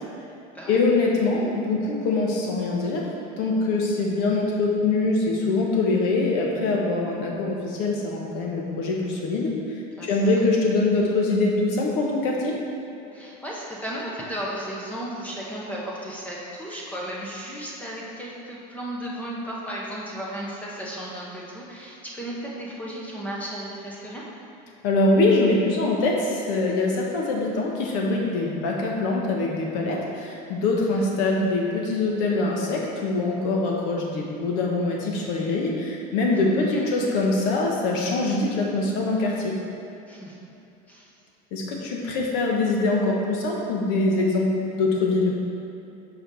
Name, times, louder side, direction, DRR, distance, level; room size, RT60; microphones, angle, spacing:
voice 1, 0.7-3.0 3.4-9.5 10.0-12.5 24.8-39.5 41.5-45.3, left 2 dB, 60° left, -1 dB, 1.4 m, -23 dB
voice 2, 10.0-10.5 13.1-24.3 30.9-31.0 36.5-36.9 40.1-40.4 40.9-41.1, right 1 dB, 5° left, -5 dB, 0.9 m, -35 dB
5.1 x 5.0 x 6.3 m, 2.9 s
cardioid pair, 160°, 20 cm